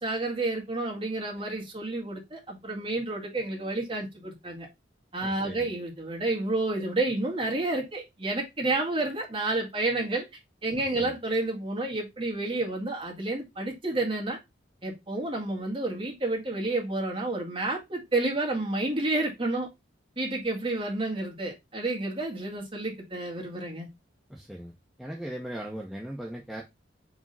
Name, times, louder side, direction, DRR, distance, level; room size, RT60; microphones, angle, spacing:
voice 1, 0.0-4.7 5.1-10.2 10.6-14.4 14.8-19.7 20.2-23.9, right 2 dB, 30° right, 2.0 m, -30 dB
voice 2, 5.2-5.7 10.8-11.1 24.3-24.7 25.0-26.6, right 1 dB, ahead, 0.9 m, -38 dB
4.9 x 3.6 x 5.5 m
head